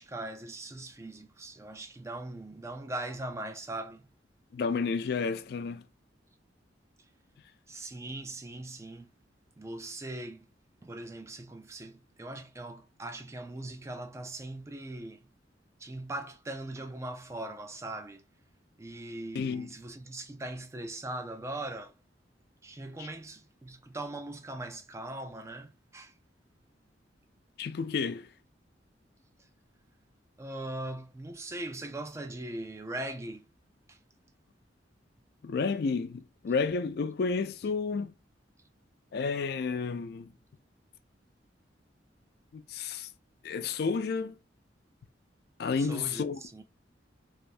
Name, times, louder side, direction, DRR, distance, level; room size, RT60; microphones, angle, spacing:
voice 1, 0.0-4.1 7.7-9.1 9.6-10.5 10.8-15.3 15.8-18.2 18.8-22.0 22.6-26.1 29.4-29.5 30.4-33.5 33.9-34.0 45.8-46.6, right 2 dB, 15° right, 0.3 m, -40 dB
voice 2, 4.5-5.8 19.3-19.7 23.0-23.1 27.6-28.3 35.4-38.1 39.1-40.3 42.5-43.1 43.4-44.4 45.6-46.4, left 5 dB, 60° left, 0.4 m, -31 dB
3.3 x 2.6 x 2.5 m
head